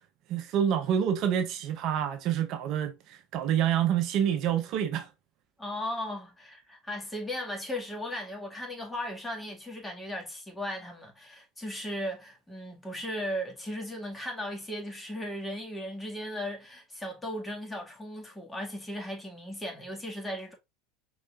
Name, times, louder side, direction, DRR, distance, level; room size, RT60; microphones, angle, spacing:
voice 1, 0.3-5.1, right 9 dB, 50° right, 0.7 m, -27 dB
voice 2, 5.6-20.5, equal, 10° left, 1.9 m, -37 dB
5.3 x 3.8 x 2.4 m
hypercardioid pair, 75°, 0 cm